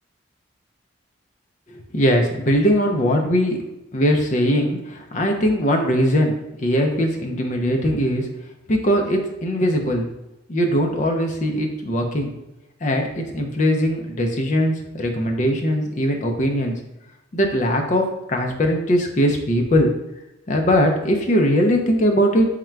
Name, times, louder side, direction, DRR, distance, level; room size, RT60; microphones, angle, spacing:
voice 1, 1.9-3.6 3.9-8.3 8.7-10.1 10.5-12.3 12.8-16.8 17.3-19.9 20.5-22.5, equal, 40° left, 3 dB, 0.5 m, -20 dB
3.6 x 2.2 x 4.4 m, 0.94 s
head